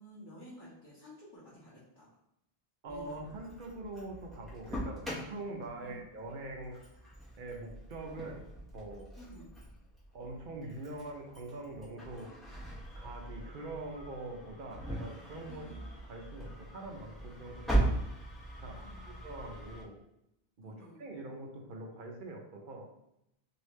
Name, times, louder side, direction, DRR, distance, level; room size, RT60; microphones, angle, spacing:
voice 1, 0.0-2.2 2.9-3.3 5.8-6.0 9.2-9.5 15.5-15.9 18.7-19.2 20.6-21.0, equal, 20° left, -12 dB, 1.1 m, -52 dB
voice 2, 2.8-6.8 7.4-8.4 8.7-9.1 10.1-12.3 12.9-15.6 16.1-17.9 18.6-18.8 19.2-20.0 20.6-22.9, right 2 dB, 55° right, 1 dB, 0.7 m, -43 dB
Engine starting, 2.9-19.8, right 1 dB, ahead, 0.9 m, -40 dB
3.2 x 2.7 x 3.1 m, 0.81 s
omnidirectional pair, 1.0 m